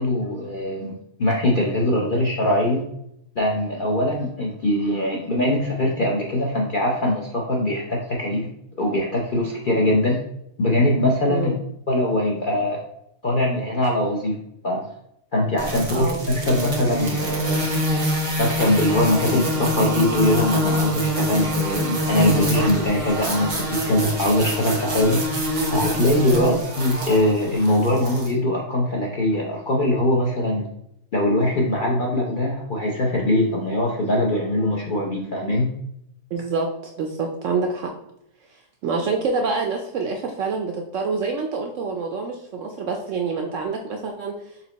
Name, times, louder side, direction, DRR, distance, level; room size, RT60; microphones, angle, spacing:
voice 1, 0.0-2.8 3.4-8.5 8.8-10.2 10.6-11.5 11.9-12.8 13.2-14.4 14.6-14.9 15.3-16.1 16.4-17.7 18.4-25.2 25.7-30.6 31.1-35.7, left 1 dB, 50° left, -3 dB, 0.6 m, -22 dB
voice 2, 11.3-11.6 15.9-16.3 26.3-26.6 36.3-36.7 37.0-37.9 38.5-44.5, right 4 dB, 70° right, 3 dB, 0.7 m, -26 dB
sound 1, 15.6-28.3, equal, 35° right, 0.5 m, -25 dB
4.3 x 3.0 x 3.9 m, 0.77 s
omnidirectional pair, 1.7 m